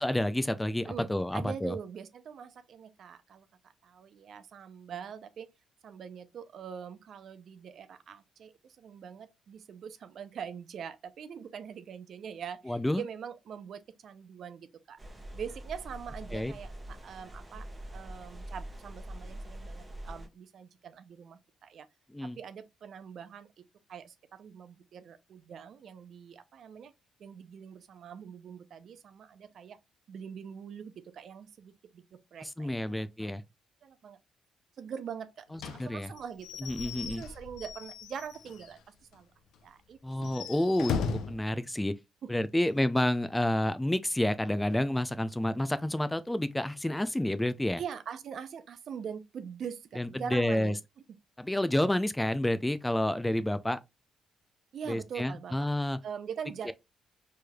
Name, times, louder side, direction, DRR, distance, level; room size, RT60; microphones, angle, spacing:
voice 1, 0.0-1.8 12.7-13.0 16.3-16.5 22.1-22.4 32.4-33.4 35.5-36.1 36.6-37.2 40.0-40.9 41.3-41.9 42.3-47.8 50.0-50.7 51.4-53.8 54.9-56.0 56.7-56.8, left 1 dB, 10° left, 0.3 m, -29 dB
voice 2, 0.9-3.5 3.8-5.5 5.8-15.0 15.3-17.7 17.9-21.9 22.2-26.9 27.2-29.8 30.1-33.4 33.8-34.2 34.8-38.8 39.1-39.3 39.6-40.0 42.2-42.3 47.8-50.7 54.7-55.7 56.0-56.7, right 7 dB, 60° right, 0.5 m, -43 dB
sound 1, 15.0-20.3, right 1 dB, 20° right, 1.1 m, -44 dB
Slam / Squeak / Wood, 35.6-38.8 39.1-39.2 39.5-39.6 40.1-41.4, left 5 dB, 80° left, 0.5 m, -37 dB
4.4 x 3.3 x 2.2 m
cardioid pair, 90°, 0 cm